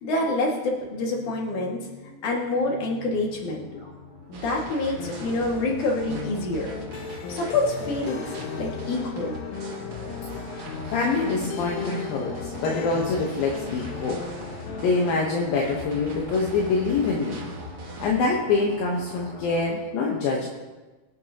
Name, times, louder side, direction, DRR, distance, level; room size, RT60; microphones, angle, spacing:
voice 1, 0.0-1.9 2.2-3.7 4.3-6.7 7.3-8.2 8.6-9.3 14.7-14.8, left 2 dB, 50° left, -2 dB, 2.9 m, -27 dB
sound 1, 0.7-19.7, left 2 dB, 20° left, 3.3 m, -43 dB
sound 2, 4.3-18.2, right 1 dB, 65° right, 1.4 m, -42 dB
sound 3, 5.0-15.2, left 6 dB, 90° left, 3.4 m, -37 dB
voice 2, 10.3-14.2 14.8-17.4 18.0-20.5, left 4 dB, 70° left, -2 dB, 2.3 m, -25 dB
24.5 x 8.8 x 2.9 m, 1.2 s
omnidirectional pair, 5.4 m